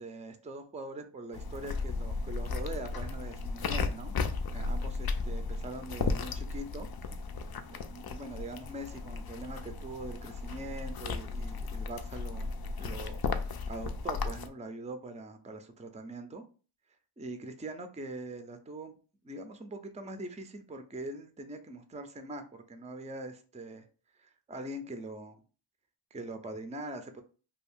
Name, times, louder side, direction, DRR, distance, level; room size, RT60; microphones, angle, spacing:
voice 1, 0.0-4.1 4.5-6.9 7.7-12.5 12.8-16.4 17.2-19.0 19.2-22.4 22.7-23.9 24.2-25.4 26.1-27.2, right 2 dB, 15° right, 7 dB, 0.4 m, -42 dB
sound 1, 1.3-14.5, left 4 dB, 50° left, 0.4 m, -35 dB
2.6 x 2.4 x 3.5 m, 0.37 s
cardioid pair, 50°, 50 cm